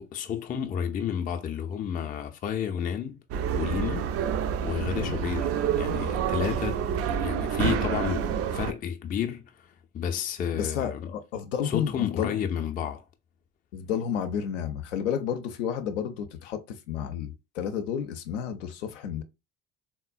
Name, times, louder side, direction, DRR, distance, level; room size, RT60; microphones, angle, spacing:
voice 1, 0.0-3.2 3.6-4.1 4.6-5.5 5.8-6.8 7.1-11.1 11.6-13.0, left 8 dB, 25° left, 0.4 m, -31 dB
sound 1, 3.3-8.7, right 8 dB, 40° right, 0.4 m, -28 dB
voice 2, 10.5-11.9 12.2-12.4 13.7-19.2, left 8 dB, 70° left, 0.5 m, -31 dB
3.6 x 2.1 x 2.4 m
figure-of-eight pair, 50°, 38 cm